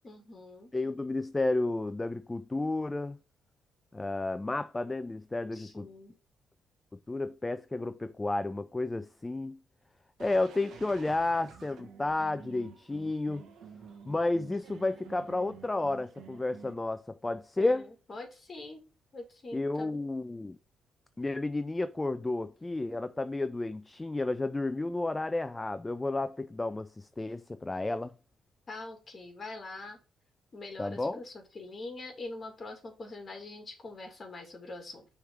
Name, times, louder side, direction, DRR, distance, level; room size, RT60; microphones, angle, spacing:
voice 1, 0.0-0.7 5.5-6.2 17.6-18.8 19.1-20.0 28.7-30.0 30.5-35.1, left 2 dB, 35° left, 2.4 m, -44 dB
voice 2, 0.7-3.2 3.9-5.9 7.1-9.6 10.2-13.4 14.1-17.9 19.5-20.6 21.2-28.1 30.8-31.2, left 2 dB, 15° left, 0.3 m, -32 dB
sound 1, 10.2-16.7, right 6 dB, 75° right, 1.2 m, -51 dB
6.2 x 3.5 x 4.6 m
cardioid pair, 90°, 0 cm